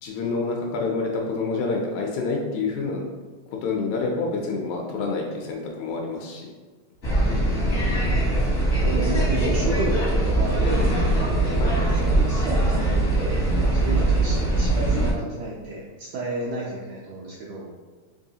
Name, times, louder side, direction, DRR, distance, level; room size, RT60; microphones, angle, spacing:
voice 1, 0.0-3.0 3.6-6.5 11.5-11.8, left 3 dB, 80° left, 1 dB, 1.7 m, -27 dB
sound 1, 7.0-15.1, right 1 dB, 60° left, 0.8 m, -21 dB
voice 2, 7.2-8.2 8.8-10.9 11.7-17.7, right 3 dB, 80° right, -5 dB, 1.5 m, -32 dB
4.6 x 2.9 x 2.7 m, 1.4 s
omnidirectional pair, 3.5 m